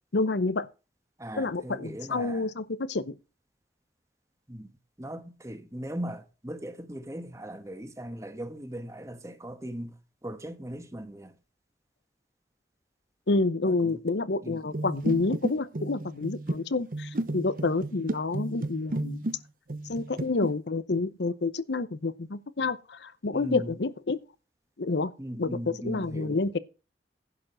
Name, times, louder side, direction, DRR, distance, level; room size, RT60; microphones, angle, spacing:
voice 1, 0.1-0.7 1.4-3.1 13.3-19.2 19.9-24.2 24.8-25.1 25.4-26.6, left 3 dB, 75° left, 0.8 m, -29 dB
voice 2, 1.2-2.5 4.5-4.7 5.0-10.0 10.2-11.3 13.6-14.0 14.4-14.7 23.3-23.7 25.2-26.4, right 1 dB, 15° right, 1.3 m, -39 dB
sound 1, 14.7-19.4 19.7-20.5, right 2 dB, 50° right, 0.8 m, -33 dB
11.0 x 5.0 x 7.5 m
head